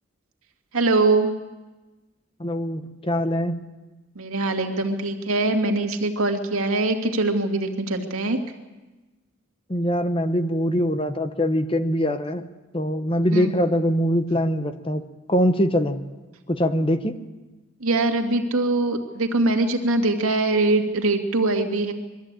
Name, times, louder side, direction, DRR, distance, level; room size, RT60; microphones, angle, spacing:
voice 1, 0.7-1.3 4.1-8.4 13.3-13.6 17.8-21.9, right 2 dB, 90° right, 4 dB, 2.2 m, -22 dB
voice 2, 2.4-3.6 9.7-12.4 12.7-15.0 15.3-16.0 16.5-17.2, equal, 25° left, 10 dB, 0.9 m, -23 dB
22.0 x 14.0 x 8.9 m, 1.2 s
head